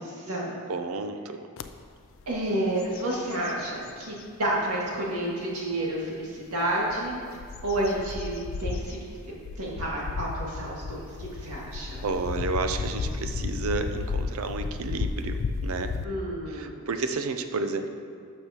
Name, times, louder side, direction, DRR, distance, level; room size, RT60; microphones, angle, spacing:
voice 1, 0.0-0.6 2.3-7.2 7.6-12.0 16.0-16.8, right 1 dB, 90° right, -4 dB, 1.9 m, -30 dB
voice 2, 0.7-1.4 12.0-15.9 16.6-17.9, right 3 dB, 70° right, 8 dB, 0.5 m, -31 dB
sound 1, 1.6-1.7 2.2-2.5 2.8-4.3 4.9-5.0 6.7-16.1, left 4 dB, 60° left, 0.3 m, -33 dB
12.0 x 6.5 x 2.9 m, 2.1 s
head